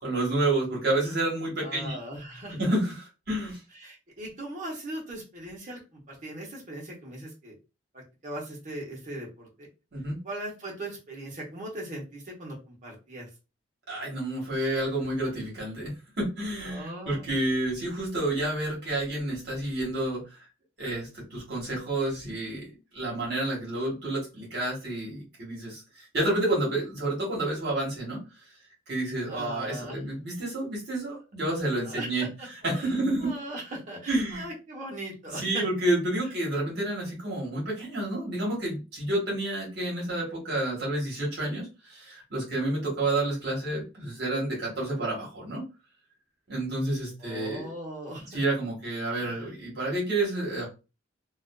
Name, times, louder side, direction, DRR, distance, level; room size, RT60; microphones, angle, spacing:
voice 1, 0.0-2.0 2.6-3.6 9.9-10.2 13.9-20.2 20.8-28.2 28.9-32.3 32.6-33.3 34.1-34.5 35.3-45.6 46.5-47.7 48.3-50.7, right 1 dB, 55° right, -4 dB, 1.1 m, -29 dB
voice 2, 1.6-2.7 3.8-7.5 7.9-9.7 10.2-13.3 16.6-17.3 29.3-30.1 31.8-32.5 32.7-32.9 33.2-35.6 47.2-48.3 49.1-49.5, right 1 dB, 40° right, -2 dB, 0.9 m, -39 dB
2.4 x 2.3 x 2.2 m, 0.29 s
head